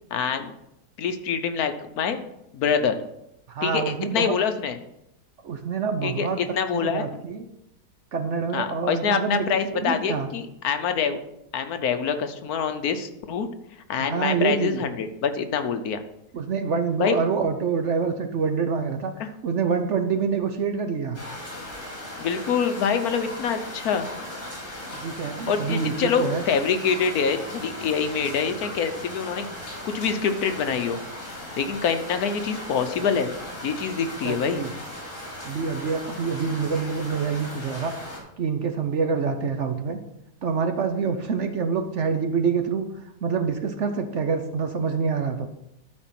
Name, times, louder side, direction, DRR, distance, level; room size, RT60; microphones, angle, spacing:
voice 1, 0.1-0.5 1.0-2.2 2.5-3.0 3.6-4.8 6.0-6.3 6.5-7.0 8.5-11.2 11.5-13.5 13.9-16.0 17.0-17.2 19.2-19.3 22.2-24.1 25.5-29.4 29.8-31.0 31.6-33.4 33.6-34.7, left 6 dB, 70° left, 8 dB, 1.3 m, -25 dB
voice 2, 3.5-4.3 5.4-6.4 6.7-7.5 8.1-10.3 14.0-14.8 16.3-19.1 19.4-21.2 24.9-26.4 34.2-34.7 35.4-37.9 38.4-40.0 40.4-42.9 43.2-45.5, right 5 dB, 55° right, 7 dB, 0.9 m, -26 dB
sound 1, 21.1-38.2, left 1 dB, 55° left, 3.6 m, -37 dB
12.5 x 4.4 x 5.9 m, 0.83 s
omnidirectional pair, 1.7 m